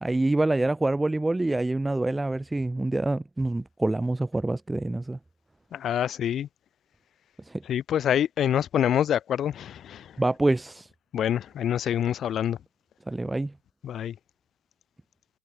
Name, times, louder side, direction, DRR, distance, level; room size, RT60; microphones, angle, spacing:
voice 1, 0.0-5.2 7.5-7.6 10.2-10.9 13.1-13.5, right 2 dB, 5° right, 1.5 m, -26 dB
voice 2, 5.7-6.5 7.6-10.2 11.1-12.6 13.8-14.2, left 10 dB, 25° left, 2.0 m, -26 dB
figure-of-eight pair, 90°, 0 cm